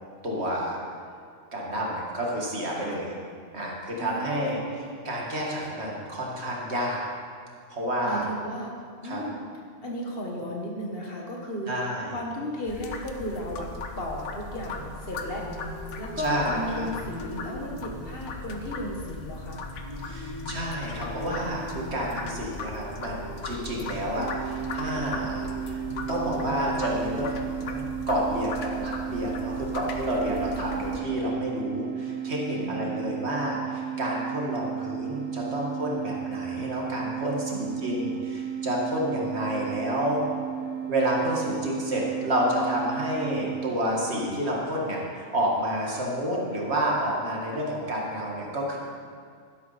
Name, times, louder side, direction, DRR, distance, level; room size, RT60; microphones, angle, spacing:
voice 1, 0.2-0.8 1.5-3.1 3.5-7.0 7.7-8.3 9.0-9.2 11.7-12.1 16.2-16.9 20.0-25.8 26.1-40.2 40.9-48.8, equal, 65° right, -3 dB, 2.1 m, -29 dB
voice 2, 4.0-4.9 8.0-8.8 9.0-9.4 9.8-15.5 16.0-19.6 30.1-31.0 32.5-33.0 37.6-38.2, equal, 55° left, -1 dB, 1.7 m, -35 dB
sound 1, 12.7-31.0, left 4 dB, 80° left, 1.2 m, -39 dB
sound 2, 15.3-27.3, equal, 35° right, 1.5 m, -42 dB
sound 3, 24.2-43.8, right 9 dB, 90° right, 1.4 m, -34 dB
12.0 x 11.0 x 4.2 m, 2.1 s
omnidirectional pair, 1.2 m